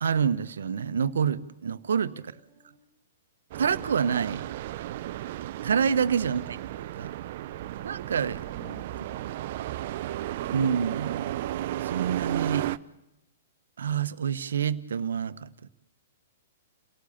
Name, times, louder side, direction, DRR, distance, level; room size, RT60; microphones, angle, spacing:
voice 1, 0.0-2.1 3.6-4.5 5.6-6.4 6.8-7.1 7.8-8.4 10.5-11.3 11.8-12.7 13.8-15.5, right 7 dB, 75° right, 13 dB, 1.2 m, -27 dB
voice 2, 2.1-2.9 8.4-9.5, left 1 dB, 15° right, 3 dB, 4.8 m, -52 dB
sound 1, 3.5-12.8, right 13 dB, 50° right, 0.7 m, -34 dB
29.0 x 18.0 x 7.2 m, 0.93 s
hypercardioid pair, 120°, 0 cm